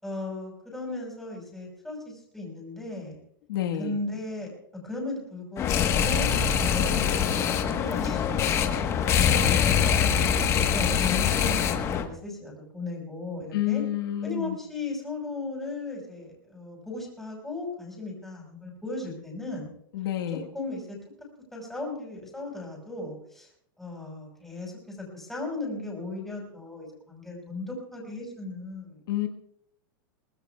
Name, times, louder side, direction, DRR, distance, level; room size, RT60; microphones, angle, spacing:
voice 1, 0.0-3.2 3.8-4.5 4.8-6.3 6.7-13.8 14.2-19.7 20.5-21.0 21.5-23.5 23.8-29.0, left 2 dB, ahead, -2 dB, 5.7 m, -36 dB
voice 2, 3.5-4.0 13.5-14.6 19.9-20.4 29.1-29.3, left 12 dB, 70° left, 3 dB, 1.5 m, -29 dB
sound 1, 5.6-12.0, left 7 dB, 25° left, 1.3 m, -24 dB
23.5 x 19.0 x 2.4 m, 0.71 s
supercardioid pair, 160°, 12 cm